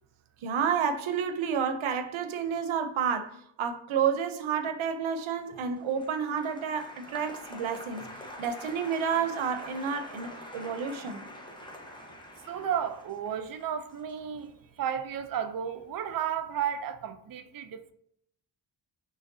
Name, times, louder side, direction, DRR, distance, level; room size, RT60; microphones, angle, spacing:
voice 1, 0.4-8.1 8.4-11.3, right 7 dB, 85° right, 0.7 m, -30 dB
Applause, 5.4-15.8 16.0-16.6, left 1 dB, 10° left, 1.0 m, -46 dB
voice 2, 12.5-17.9, right 8 dB, 45° right, 0.5 m, -33 dB
6.2 x 3.2 x 2.7 m
cardioid pair, 70°, 47 cm